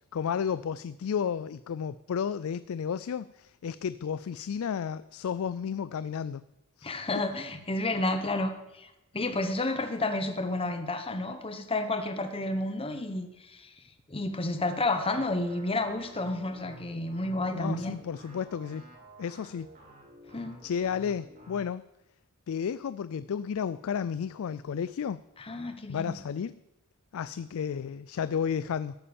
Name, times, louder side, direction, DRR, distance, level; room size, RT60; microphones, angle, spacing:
voice 1, 0.1-6.4 6.8-6.9 17.5-18.8 19.2-19.7 20.6-21.8 22.5-25.2 25.9-26.6 27.1-28.9, left 7 dB, 70° left, 16 dB, 0.4 m, -32 dB
voice 2, 6.8-13.7 14.1-18.0 20.3-20.6 25.4-26.2, left 2 dB, 25° left, 7 dB, 1.1 m, -31 dB
sound 1, 14.9-21.6, right 1 dB, 40° right, 3.1 m, -51 dB
13.0 x 8.6 x 7.0 m, 0.93 s
head